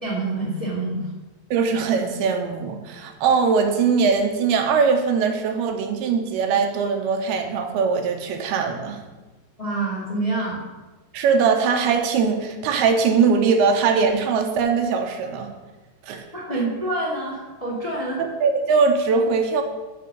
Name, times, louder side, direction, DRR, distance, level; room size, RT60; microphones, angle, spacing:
voice 1, 0.0-1.1 9.6-10.6 16.3-18.2, right 2 dB, 20° left, -3 dB, 1.1 m, -27 dB
voice 2, 1.5-9.0 11.1-15.5 16.1-16.2 16.5-16.6 18.2-19.6, right 5 dB, 80° right, 4 dB, 2.8 m, -21 dB
6.9 x 6.4 x 6.6 m, 1.2 s
omnidirectional pair, 4.6 m